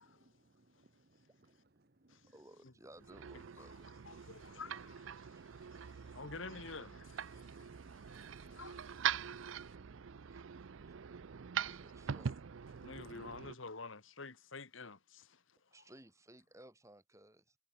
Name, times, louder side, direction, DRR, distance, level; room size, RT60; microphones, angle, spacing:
voice 1, 0.0-1.5 2.0-2.3 4.2-4.5 5.7-6.2 7.3-8.6 9.1-11.8, right 2 dB, 45° right, 1.2 m, -69 dB
voice 2, 2.3-4.1 4.5-4.6 5.3-6.2 9.2-10.8 11.6-12.4 15.7-17.6, right 1 dB, 15° right, 4.4 m, -61 dB
sound 1, 3.0-13.5, right 8 dB, 70° right, 0.5 m, -43 dB
voice 3, 4.1-9.2 11.7-11.8 12.8-15.4, left 4 dB, 70° left, 1.7 m, -50 dB
head